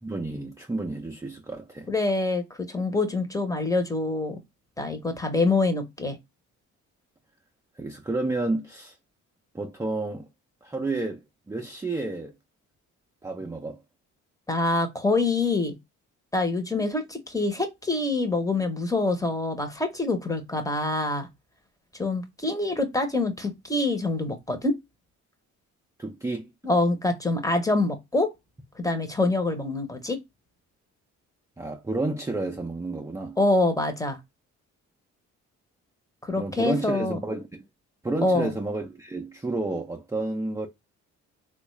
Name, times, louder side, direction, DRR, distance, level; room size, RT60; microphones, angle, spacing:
voice 1, 0.0-1.9 7.8-9.0 9.5-10.3 10.6-12.3 13.2-13.8 26.0-26.5 31.6-33.4 36.4-37.6 38.0-40.7, right 2 dB, 10° right, 0.5 m, -31 dB
voice 2, 1.9-4.4 4.8-6.2 14.5-15.7 16.3-21.3 22.0-24.8 26.6-28.3 28.8-30.2 33.4-34.2 36.2-37.2 38.2-38.5, left 2 dB, 10° left, 0.8 m, -25 dB
3.5 x 2.3 x 3.1 m
cardioid pair, 90°, 30 cm